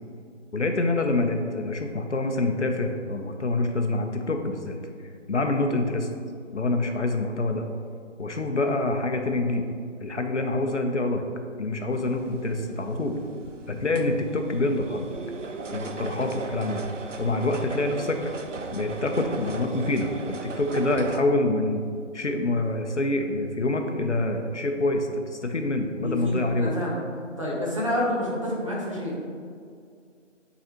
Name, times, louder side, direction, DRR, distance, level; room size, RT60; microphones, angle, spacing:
voice 1, 0.5-4.8 5.3-6.1 6.5-7.6 8.2-9.7 10.0-11.3 11.6-13.2 13.7-15.1 15.7-16.8 17.2-18.2 18.7-21.8 22.1-26.8, left 2 dB, 65° left, 4 dB, 0.7 m, -26 dB
sound 1, 11.9-21.2, right 3 dB, 70° right, 0.6 m, -37 dB
voice 2, 26.0-29.1, left 1 dB, 25° right, -5 dB, 0.9 m, -29 dB
8.6 x 4.0 x 2.9 m, 2.2 s
figure-of-eight pair, 160°, 38 cm